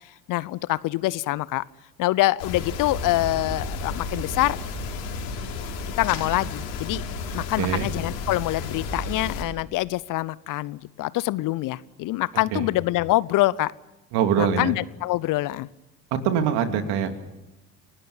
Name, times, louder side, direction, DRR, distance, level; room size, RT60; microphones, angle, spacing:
voice 1, 0.3-1.6 2.0-4.6 6.0-7.0 7.3-13.7 14.4-15.7, left 17 dB, 45° left, 21 dB, 0.7 m, -25 dB
sound 1, 2.4-9.4, left 3 dB, 65° left, 4.9 m, -32 dB
voice 2, 7.3-7.9 12.5-12.7 14.1-14.7 16.2-17.2, right 8 dB, 55° right, 7 dB, 3.0 m, -24 dB
29.5 x 18.5 x 7.3 m, 1.0 s
figure-of-eight pair, 65°, 46 cm